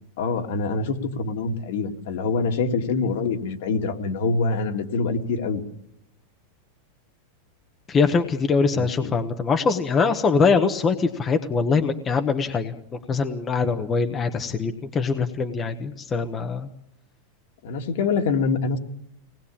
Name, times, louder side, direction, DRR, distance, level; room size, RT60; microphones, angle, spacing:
voice 1, 0.2-5.6 8.7-8.9 17.6-18.8, left 4 dB, 60° left, 4 dB, 2.3 m, -25 dB
voice 2, 7.9-16.7, left 5 dB, 15° left, 6 dB, 1.0 m, -23 dB
24.5 x 19.5 x 8.7 m, 0.77 s
supercardioid pair, 170°, 0 cm